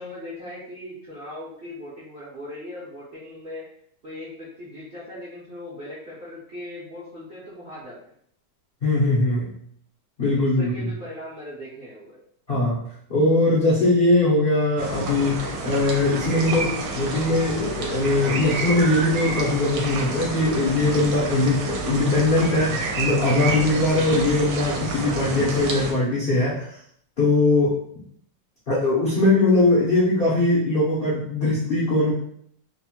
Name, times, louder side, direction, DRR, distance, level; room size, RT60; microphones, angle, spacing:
voice 1, 0.0-3.6 4.0-8.0 10.4-12.2, left 1 dB, 50° right, -9 dB, 0.6 m, -39 dB
voice 2, 8.8-9.5 10.2-10.9 12.5-12.8 13.1-26.7 27.2-27.8 28.7-32.1, left 2 dB, 60° left, -8 dB, 0.6 m, -21 dB
sound 1, 14.8-25.9, right 3 dB, 80° right, 1.3 m, -29 dB
3.1 x 2.1 x 2.9 m, 0.65 s
omnidirectional pair, 2.0 m